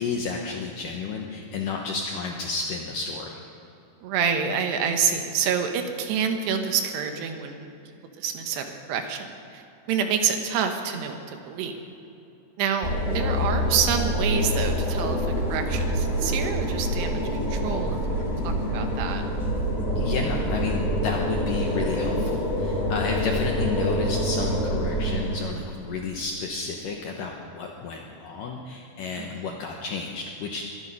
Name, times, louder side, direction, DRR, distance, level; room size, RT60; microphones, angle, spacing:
voice 1, 0.0-3.3 20.0-30.7, left 4 dB, 75° left, 1 dB, 2.0 m, -32 dB
voice 2, 4.0-7.7 8.2-9.6 9.9-11.7 12.6-15.2 15.5-17.2 17.5-19.2 29.2-29.5, right 7 dB, 75° right, 6 dB, 3.1 m, -27 dB
sound 1, 12.8-25.4, equal, 30° left, 1.1 m, -26 dB
22.0 x 11.5 x 5.5 m, 2.8 s
omnidirectional pair, 5.1 m